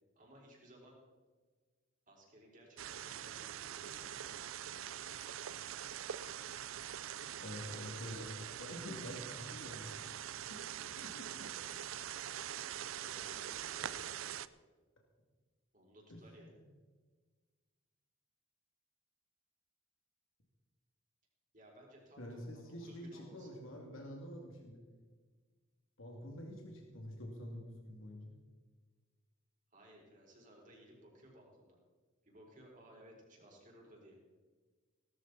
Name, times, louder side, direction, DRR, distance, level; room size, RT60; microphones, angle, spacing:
voice 1, 0.2-1.0 2.1-4.4 12.6-14.1 15.7-16.6 21.5-23.6 29.7-31.8 32.2-34.2, right 1 dB, 40° right, -2 dB, 4.4 m, -59 dB
sound 1, 2.8-14.5, right 10 dB, 80° right, 0.5 m, -44 dB
voice 2, 7.4-11.5 16.1-16.6 22.2-24.8 26.0-28.3, left 1 dB, 80° left, 0 dB, 2.4 m, -48 dB
18.0 x 13.5 x 4.1 m, 1.4 s
head